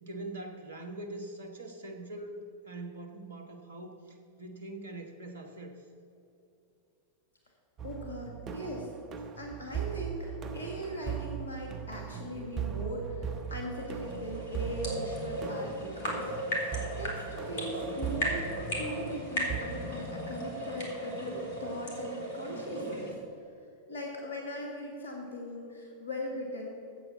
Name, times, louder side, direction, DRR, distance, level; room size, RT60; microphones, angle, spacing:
voice 1, 0.0-2.4 2.6-5.8, right 2 dB, 65° right, 5 dB, 1.2 m, -43 dB
voice 2, 7.8-8.9 9.4-16.3 16.6-18.5 18.8-23.2 23.9-26.7, equal, 75° left, 0 dB, 1.6 m, -39 dB
sound 1, 7.8-19.6, right 8 dB, 30° right, 0.8 m, -39 dB
sound 2, 13.3-23.1, equal, 60° left, 2.7 m, -36 dB
8.7 x 8.0 x 6.0 m, 2.7 s
figure-of-eight pair, 90°, 0 cm